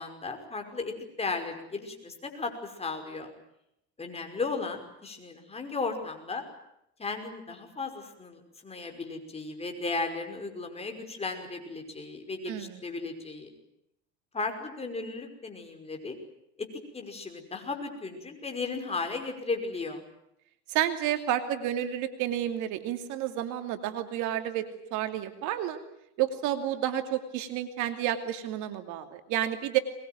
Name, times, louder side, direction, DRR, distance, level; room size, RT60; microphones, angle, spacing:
voice 1, 0.0-3.3 4.0-6.4 7.0-13.5 14.3-16.2 16.6-16.7 16.9-20.0, left 3 dB, 20° left, 4 dB, 5.5 m, -35 dB
voice 2, 12.5-12.8 20.7-24.6 24.9-25.8 26.2-29.8, right 11 dB, 60° right, 8 dB, 2.8 m, -30 dB
23.0 x 21.5 x 9.3 m, 0.79 s
supercardioid pair, 110°, 33 cm